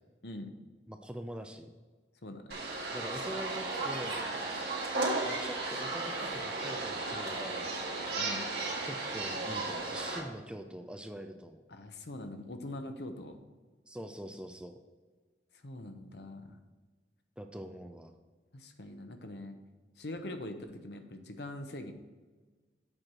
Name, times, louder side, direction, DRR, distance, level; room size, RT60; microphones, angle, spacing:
voice 1, 0.9-1.7 2.9-4.3 5.2-7.7 8.8-11.6 13.9-14.8 17.4-18.1, right 1 dB, 5° right, 6 dB, 0.4 m, -44 dB
voice 2, 2.2-2.6 8.2-8.5 11.7-13.5 15.6-16.6 18.5-19.6 20.0-21.9, left 1 dB, 65° left, 7 dB, 0.8 m, -43 dB
sound 1, 2.5-10.2, right 2 dB, 65° right, 2.0 m, -35 dB
7.7 x 4.5 x 6.2 m, 1.3 s
head